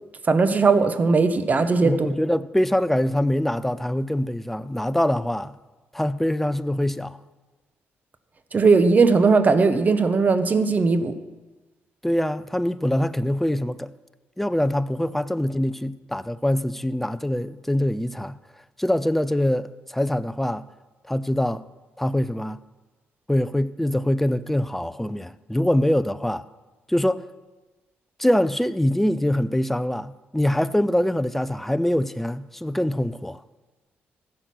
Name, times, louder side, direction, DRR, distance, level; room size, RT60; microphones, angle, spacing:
voice 1, 0.3-1.9 8.5-11.1, right 4 dB, 40° right, 1.0 m, -18 dB
voice 2, 1.8-5.6 5.9-7.2 12.0-13.9 14.4-18.4 18.8-20.7 21.0-21.6 22.0-22.6 23.3-26.5 26.9-27.3 28.2-33.4, left 1 dB, 5° left, 0.5 m, -24 dB
14.5 x 6.6 x 6.0 m
cardioid pair, 80°, 4 cm